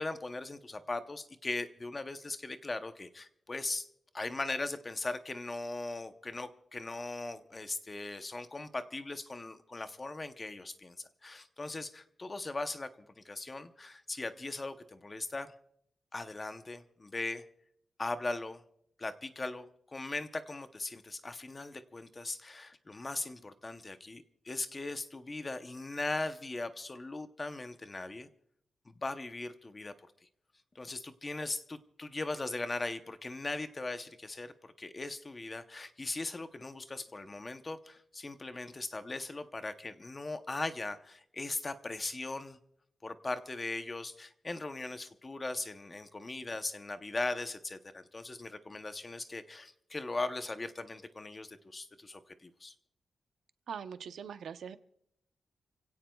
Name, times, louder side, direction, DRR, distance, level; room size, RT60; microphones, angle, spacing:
voice 1, 0.0-3.9 4.1-15.5 16.1-17.4 18.0-18.6 19.0-28.3 28.9-29.9 30.7-42.6 43.0-52.7, left 2 dB, 20° left, 9 dB, 0.8 m, -39 dB
voice 2, 53.7-54.8, right 7 dB, 75° right, 10 dB, 0.7 m, -42 dB
29.5 x 17.0 x 2.3 m, 0.71 s
wide cardioid pair, 170°, 0 cm